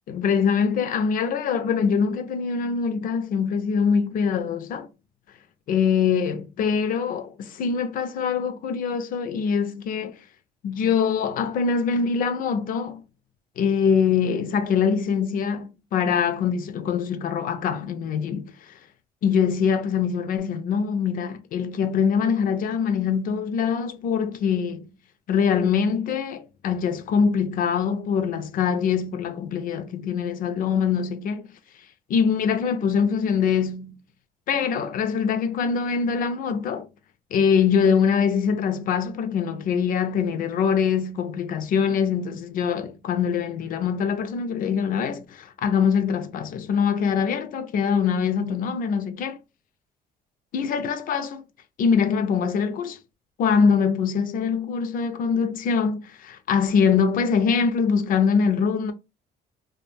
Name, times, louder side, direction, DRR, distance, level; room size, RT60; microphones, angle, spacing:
voice 1, 0.1-4.9 5.7-10.2 10.6-13.0 13.6-18.5 19.2-24.9 25.3-31.4 32.1-34.0 34.5-36.9 37.3-49.4 50.5-51.4 51.8-53.0 53.4-58.9, left 6 dB, 55° left, 0.5 m, -23 dB
2.2 x 2.1 x 3.2 m
cardioid pair, 110°, 17 cm